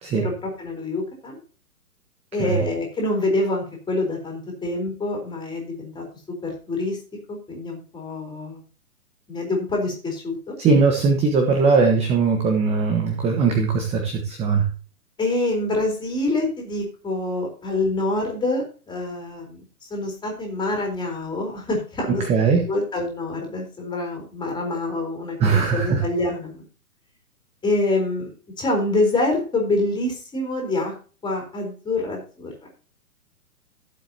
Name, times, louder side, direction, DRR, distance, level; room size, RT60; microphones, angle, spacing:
voice 1, 0.1-1.4 2.3-6.0 6.4-7.0 7.3-8.6 9.3-10.5 15.2-22.2 22.7-26.6 27.6-28.3 28.6-30.9 31.2-32.7, left 2 dB, 10° left, 1 dB, 4.0 m, -26 dB
voice 2, 10.6-14.7 22.1-22.7 25.4-26.0, right 4 dB, 15° right, 3 dB, 1.2 m, -20 dB
15.0 x 7.8 x 2.9 m, 0.36 s
figure-of-eight pair, 125°, 46 cm